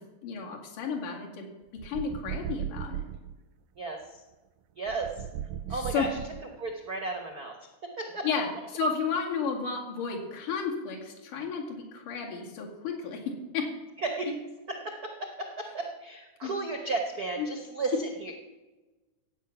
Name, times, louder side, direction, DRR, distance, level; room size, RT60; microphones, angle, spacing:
voice 1, 0.2-1.5 1.8-3.0 5.7-6.1 8.2-8.5 8.7-13.2 13.5-13.6 14.3-14.4 16.4-16.5 17.4-17.5, left 5 dB, 80° left, -1 dB, 3.8 m, -32 dB
sound 1, 1.8-3.4 4.9-6.7, right 10 dB, 85° right, 2.1 m, -37 dB
voice 2, 3.8-4.2 4.8-5.2 5.7-6.2 6.6-7.5 7.8-8.2 14.0-14.3 14.7-18.3, right 3 dB, 65° right, 3 dB, 0.9 m, -34 dB
15.5 x 8.3 x 5.9 m, 1.1 s
omnidirectional pair, 3.6 m